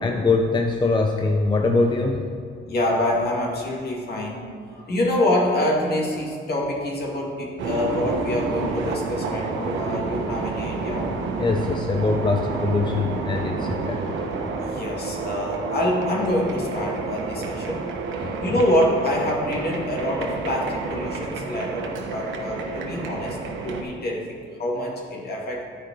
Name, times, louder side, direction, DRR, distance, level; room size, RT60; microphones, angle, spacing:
voice 1, 0.0-2.2 11.4-14.0 18.2-18.4, left 3 dB, 25° left, 3 dB, 0.6 m, -22 dB
voice 2, 2.7-11.0 14.6-17.8 18.4-23.4 23.6-25.6, left 1 dB, 55° left, -2 dB, 2.2 m, -26 dB
sound 1, 7.6-23.8, right 4 dB, 75° right, 1.0 m, -29 dB
11.5 x 5.0 x 4.5 m, 2.2 s
cardioid pair, 90°, 20 cm